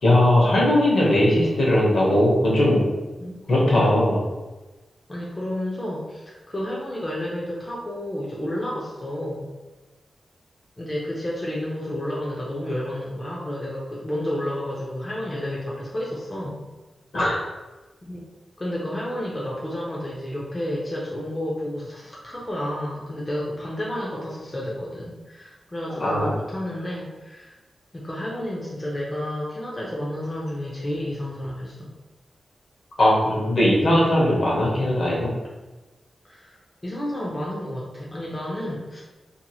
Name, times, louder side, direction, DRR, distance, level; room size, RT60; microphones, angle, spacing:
voice 1, 0.0-2.9 3.5-4.2 17.1-17.4 26.0-26.3 33.0-35.3, left 1 dB, 60° left, -4 dB, 0.9 m, -19 dB
voice 2, 3.2-4.0 5.1-9.5 10.8-16.6 18.0-18.3 18.6-27.6 27.9-31.9 36.2-39.0, left 1 dB, 25° left, -5 dB, 0.5 m, -31 dB
2.8 x 2.7 x 2.2 m, 1.1 s
wide cardioid pair, 120°, 0 cm